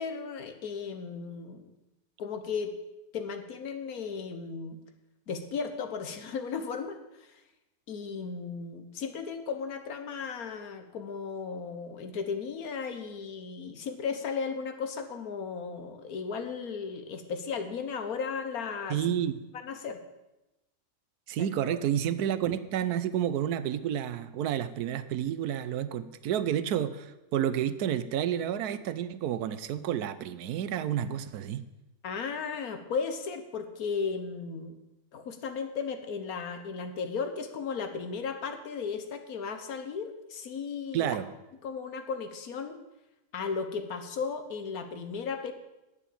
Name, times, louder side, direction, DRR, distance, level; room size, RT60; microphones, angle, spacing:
voice 1, 0.0-1.6 2.2-2.7 3.1-4.8 5.3-7.4 7.9-19.2 19.6-20.0 21.4-21.8 32.0-34.8 35.1-41.2 41.6-42.8 43.3-45.5, left 5 dB, 75° left, 8 dB, 1.5 m, -35 dB
voice 2, 18.9-19.3 21.3-31.6 40.9-41.3, right 10 dB, 85° right, 14 dB, 1.2 m, -30 dB
9.1 x 7.0 x 8.4 m, 0.97 s
omnidirectional pair, 1.6 m